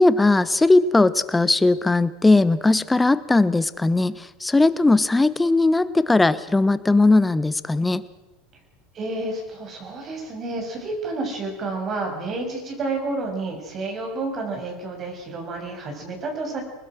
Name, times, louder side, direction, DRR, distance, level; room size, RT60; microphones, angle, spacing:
voice 1, 0.0-8.0, left 2 dB, 10° left, 16 dB, 1.2 m, -18 dB
voice 2, 8.9-16.6, right 2 dB, 40° right, 2 dB, 7.5 m, -30 dB
24.5 x 20.5 x 6.4 m, 1.0 s
hypercardioid pair, 85°, 0 cm